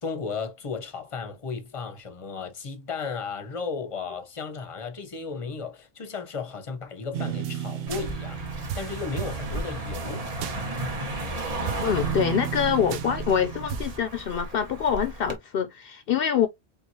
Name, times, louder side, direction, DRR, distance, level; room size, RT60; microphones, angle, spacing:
voice 1, 0.0-8.4 8.7-10.3, left 5 dB, 35° left, 0.9 m, -34 dB
sound 1, 7.1-11.3 11.7-14.0, right 10 dB, 70° right, 0.8 m, -34 dB
Car passing by, 7.9-15.4, right 1 dB, 40° right, 1.1 m, -34 dB
voice 2, 11.8-16.5, left 8 dB, 70° left, 0.7 m, -25 dB
4.5 x 3.6 x 2.7 m
omnidirectional pair, 1.0 m